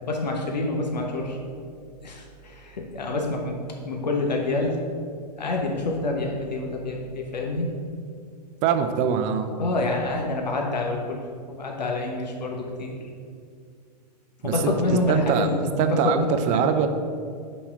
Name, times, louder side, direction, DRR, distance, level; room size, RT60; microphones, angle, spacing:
voice 1, 0.0-1.4 2.0-3.6 3.8-4.8 5.4-7.7 9.6-13.0 14.4-16.6, left 2 dB, 85° left, 1 dB, 1.0 m, -27 dB
voice 2, 8.6-9.5 14.4-14.8 15.1-15.5 15.8-16.9, right 7 dB, 35° right, 8 dB, 0.5 m, -23 dB
5.7 x 4.2 x 5.7 m, 2.2 s
hypercardioid pair, 115°, 21 cm